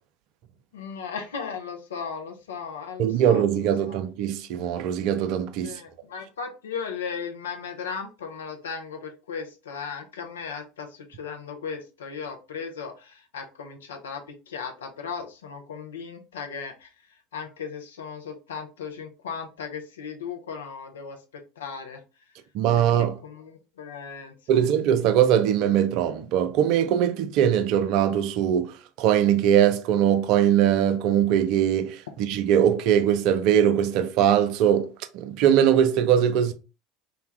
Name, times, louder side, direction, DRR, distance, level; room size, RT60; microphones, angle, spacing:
voice 1, 0.7-3.4 3.9-4.0 5.6-16.9 17.3-22.0 22.7-24.3, left 6 dB, 70° left, 0.5 m, -36 dB
voice 2, 3.0-5.7 22.5-23.1 24.5-28.7 29.0-34.9 35.1-36.5, right 9 dB, 50° right, 0.3 m, -21 dB
2.4 x 2.1 x 3.2 m
figure-of-eight pair, 70°, 0 cm